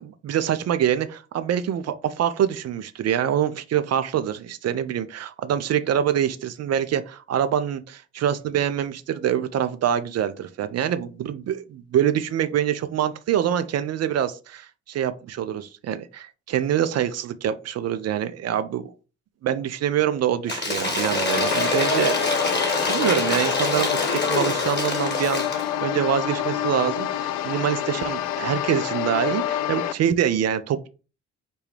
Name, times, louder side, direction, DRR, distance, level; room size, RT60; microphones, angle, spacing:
voice 1, 0.0-18.9 19.4-22.1 22.6-30.9, right 9 dB, 45° right, 0.5 m, -25 dB
Cheering / Applause / Crowd, 20.5-25.7, left 2 dB, 30° left, 1.6 m, -25 dB
sound 1, 21.3-29.9, left 11 dB, 65° left, 0.5 m, -27 dB
6.6 x 2.2 x 3.3 m
hypercardioid pair, 45°, 34 cm